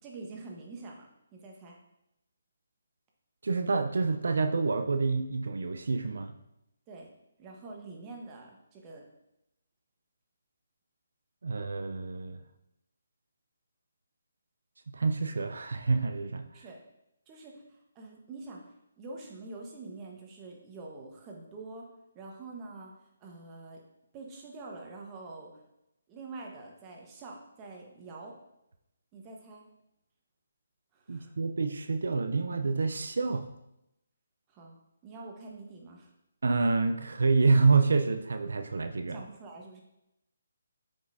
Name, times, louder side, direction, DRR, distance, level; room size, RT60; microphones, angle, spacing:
voice 1, 0.0-1.8 6.9-7.1 7.4-9.1 16.5-16.8 17.3-18.6 19.0-21.9 22.1-22.9 23.2-23.8 24.1-25.5 26.1-28.4 29.1-29.6 30.9-31.3 34.5-34.8 35.0-36.1 39.0-39.8, right 3 dB, 20° right, 0 dB, 1.2 m, -45 dB
voice 2, 3.4-6.3 11.4-12.4 14.9-16.4 31.1-33.5 36.4-39.2, right 4 dB, 75° right, 8 dB, 0.5 m, -27 dB
7.8 x 5.3 x 2.7 m, 0.86 s
hypercardioid pair, 155°, 0 cm